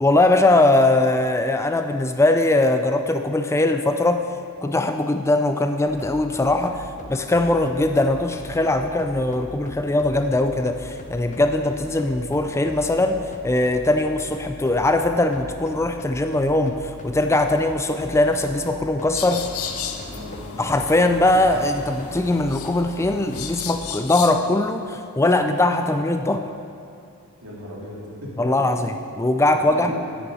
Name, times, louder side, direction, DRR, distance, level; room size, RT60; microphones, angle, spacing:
voice 1, 0.0-4.3 4.6-19.5 20.6-26.5 28.4-30.0, left 2 dB, 10° left, 7 dB, 0.4 m, -21 dB
sound 1, 5.9-23.9, left 2 dB, 35° left, 0.8 m, -41 dB
sound 2, 19.1-24.3, left 7 dB, 70° left, 0.9 m, -34 dB
voice 2, 20.1-20.4 27.4-28.9 29.7-30.0, equal, 75° right, -5 dB, 3.3 m, -36 dB
10.0 x 6.8 x 9.2 m, 2.4 s
head